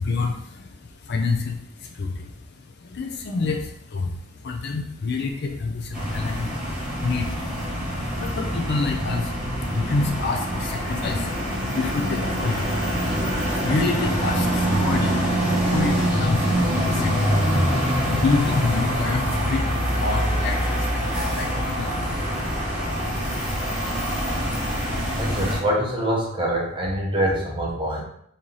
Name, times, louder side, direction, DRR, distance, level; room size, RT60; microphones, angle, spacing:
voice 1, 0.0-2.3 2.6-13.0 13.3-17.5 17.7-22.0 22.5-23.0, left 4 dB, 45° left, 3 dB, 0.4 m, -29 dB
sound 1, 5.9-25.6, equal, 5° right, 1.1 m, -24 dB
voice 2, 25.2-28.0, equal, 20° right, -2 dB, 0.7 m, -24 dB
3.0 x 2.7 x 3.8 m, 0.70 s
head